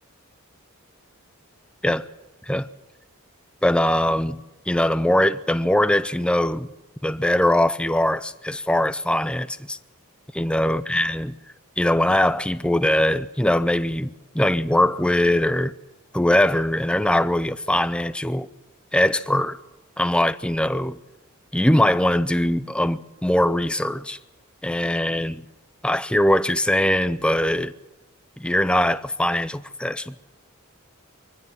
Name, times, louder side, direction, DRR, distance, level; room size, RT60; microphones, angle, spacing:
voice 1, 3.6-4.4 4.7-6.7 7.0-9.8 10.3-11.3 11.8-14.1 14.3-15.7 16.1-18.5 18.9-19.6 20.0-21.0 21.5-24.2 24.6-25.4 25.8-27.7 28.4-30.1, left 1 dB, 5° left, 0.6 m, -21 dB
23.0 x 15.5 x 7.5 m
head